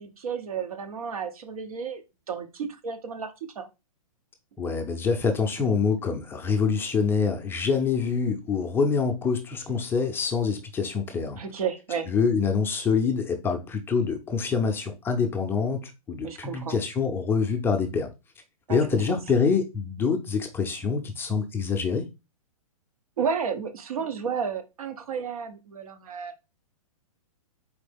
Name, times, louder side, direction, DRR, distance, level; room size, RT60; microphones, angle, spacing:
voice 1, 0.0-2.0 2.3-3.7 11.3-12.1 16.2-16.8 18.7-19.2 23.2-26.4, right 6 dB, 75° right, 1.1 m, -32 dB
voice 2, 4.6-11.4 12.1-18.1 18.7-22.0, left 5 dB, 10° left, 0.5 m, -25 dB
4.3 x 3.3 x 3.5 m
hypercardioid pair, 135°, 19 cm